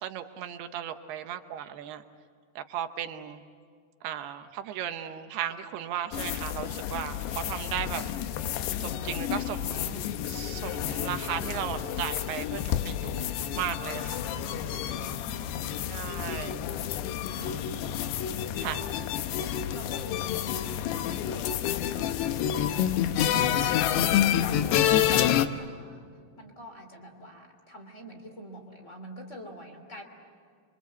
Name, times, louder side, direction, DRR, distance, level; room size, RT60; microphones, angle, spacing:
voice 1, 0.0-2.0 2.6-3.4 4.0-8.0 8.8-14.8 15.9-16.7 17.4-17.9 18.6-18.8 24.9-25.6, right 10 dB, 75° right, 8 dB, 2.7 m, -36 dB
sound 1, 6.1-25.5, left 10 dB, 75° left, 2.9 m, -29 dB
voice 2, 14.7-17.0 17.9-18.1 18.8-19.0 19.7-25.0 25.6-30.0, equal, 20° left, 5 dB, 2.5 m, -48 dB
28.0 x 25.0 x 8.3 m, 2.1 s
omnidirectional pair, 5.1 m